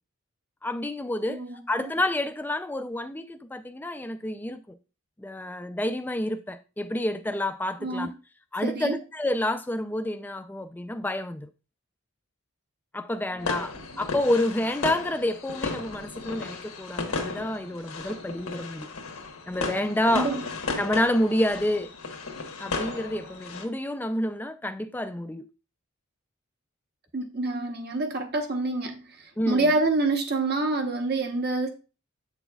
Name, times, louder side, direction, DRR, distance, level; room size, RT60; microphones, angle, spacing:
voice 1, 0.6-1.4 1.7-4.6 5.2-8.1 8.5-11.5 12.9-18.9 19.5-20.4 20.8-21.9 22.6-25.5 29.4-29.7, left 1 dB, 10° left, 0.3 m, -28 dB
voice 2, 1.3-1.7 7.8-8.1 8.6-9.0 13.1-13.3 20.1-20.5 27.1-31.7, right 2 dB, 45° right, 0.9 m, -27 dB
sound 1, 13.4-23.7, left 3 dB, 90° left, 1.3 m, -35 dB
7.9 x 6.2 x 2.3 m
head